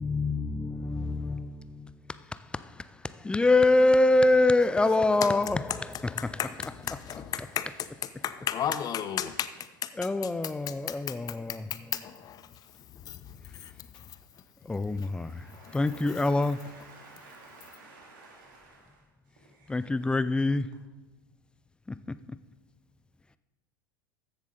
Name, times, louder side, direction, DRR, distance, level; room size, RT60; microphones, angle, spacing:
voice 1, 0.0-7.0 7.4-7.5 9.9-11.9 14.6-16.6 19.7-20.7 21.9-22.4, left 2 dB, 10° left, 0.4 m, -26 dB
voice 2, 6.8-7.7 8.2-9.5 11.9-12.4 13.0-13.2 13.5-13.7 15.5-15.8, left 9 dB, 35° left, 0.8 m, -33 dB
voice 3, 15.2-19.0 19.5-19.7, right 3 dB, 70° right, 2.7 m, -52 dB
13.5 x 7.2 x 3.9 m
hypercardioid pair, 90°, 11 cm